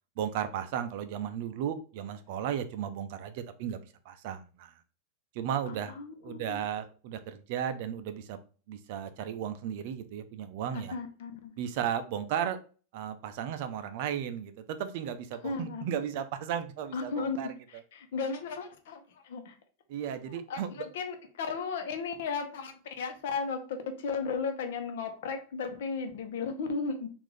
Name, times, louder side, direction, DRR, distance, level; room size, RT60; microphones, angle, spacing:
voice 1, 0.2-4.7 5.3-5.9 6.2-8.4 8.7-11.0 11.6-12.6 12.9-17.5 17.7-17.8 19.9-20.8, right 9 dB, 50° right, 10 dB, 0.5 m, -35 dB
voice 2, 5.9-6.6 10.9-11.6 15.4-15.9 16.9-19.0 19.2-19.5 20.3-27.1, left 5 dB, 70° left, 6 dB, 0.8 m, -35 dB
3.8 x 2.5 x 3.2 m, 0.38 s
supercardioid pair, 165°, 0 cm